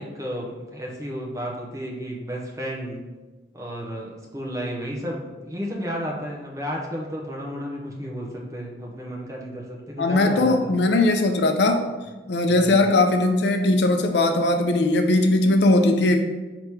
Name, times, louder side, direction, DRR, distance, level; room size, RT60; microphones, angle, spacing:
voice 1, 0.0-3.1 3.5-10.7 12.5-12.9, equal, 20° right, -2 dB, 0.7 m, -32 dB
voice 2, 10.0-11.9 12.3-16.2, left 2 dB, 80° left, 5 dB, 0.5 m, -19 dB
3.5 x 2.9 x 4.4 m, 1.2 s
head